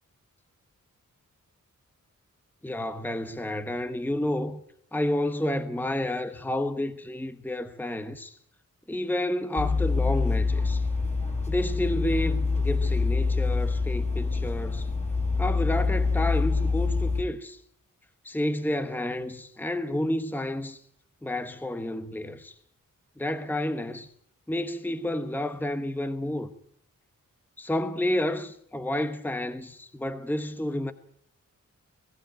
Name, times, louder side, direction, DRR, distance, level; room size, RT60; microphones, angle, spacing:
voice 1, 2.6-4.6 4.9-8.4 8.9-10.8 11.5-14.9 15.4-17.6 18.2-20.8 21.2-22.5 23.2-24.1 24.5-26.5 27.6-30.9, left 1 dB, 5° left, 1.1 m, -30 dB
sound 1, 9.6-17.2, left 4 dB, 20° left, 4.0 m, -26 dB
19.0 x 16.0 x 8.9 m
wide cardioid pair, 115°, 32 cm